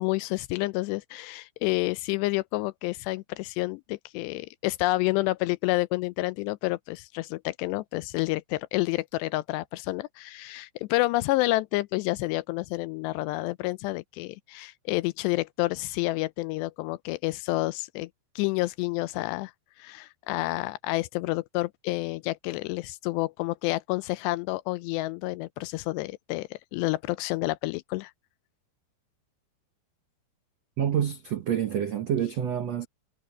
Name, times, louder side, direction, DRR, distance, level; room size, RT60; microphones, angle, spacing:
voice 1, 0.0-18.1 18.4-19.5 19.8-28.1, left 20 dB, 80° left, 2.6 m, -29 dB
voice 2, 30.8-32.9, right 9 dB, 85° right, 1.4 m, -27 dB
omnidirectional pair, 5.1 m